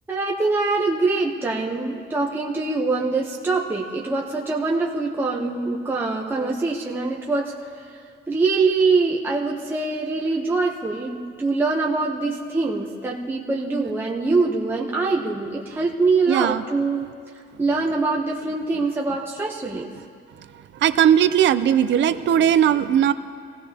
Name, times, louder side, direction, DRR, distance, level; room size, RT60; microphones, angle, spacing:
voice 1, 0.1-7.5 7.9-8.0 8.3-17.1 17.6-19.9, right 3 dB, 10° right, -2 dB, 0.8 m, -23 dB
voice 2, 16.3-16.6 20.8-23.1, right 9 dB, 60° right, 12 dB, 0.5 m, -18 dB
24.5 x 17.0 x 2.8 m, 2.4 s
cardioid pair, 180°, 21 cm